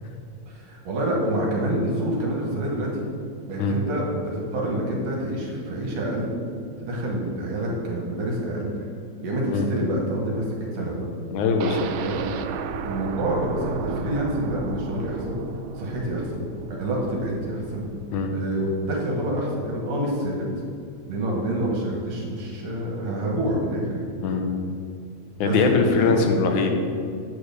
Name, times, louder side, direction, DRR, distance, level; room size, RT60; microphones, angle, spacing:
voice 1, 0.5-3.1 3.5-6.3 6.8-8.8 9.2-10.5 10.7-11.0 11.9-12.4 12.8-15.4 15.8-17.8 18.3-20.5 21.1-24.1 25.4-26.2 26.6-26.7, right 1 dB, 65° right, -2 dB, 2.6 m, -27 dB
voice 2, 11.3-11.9 18.1-18.3 24.2-24.4 25.4-26.7, left 4 dB, 85° left, 4 dB, 2.3 m, -21 dB
sound 1, 11.6-19.5 19.8-19.9 20.3-20.4, right 6 dB, 85° right, 2.0 m, -35 dB
8.6 x 4.9 x 6.8 m, 2.3 s
omnidirectional pair, 3.4 m